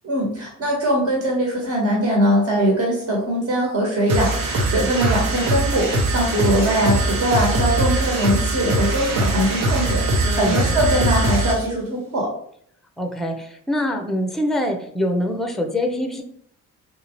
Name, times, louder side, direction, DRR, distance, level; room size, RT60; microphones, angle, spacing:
voice 1, 0.0-12.3, equal, 50° right, -2 dB, 1.3 m, -21 dB
sound 1, 4.1-11.7, right 2 dB, 65° right, 0.9 m, -21 dB
voice 2, 10.2-10.7 13.0-16.2, left 1 dB, ahead, 4 dB, 0.6 m, -24 dB
3.4 x 2.7 x 3.0 m, 0.66 s
supercardioid pair, 60°, 35 cm